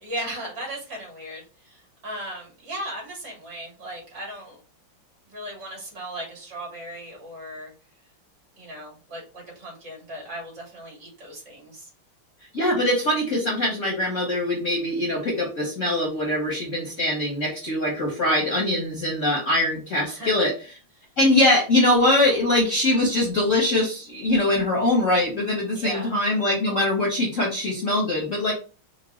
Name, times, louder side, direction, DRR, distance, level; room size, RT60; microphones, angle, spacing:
voice 1, 0.0-4.6 5.3-7.7 8.6-11.9 20.0-20.5 25.8-26.1, right 1 dB, 55° right, -2 dB, 2.4 m, -37 dB
voice 2, 12.5-20.5 21.2-28.5, left 1 dB, 50° left, -3 dB, 1.0 m, -22 dB
4.5 x 2.2 x 3.0 m, 0.36 s
omnidirectional pair, 2.3 m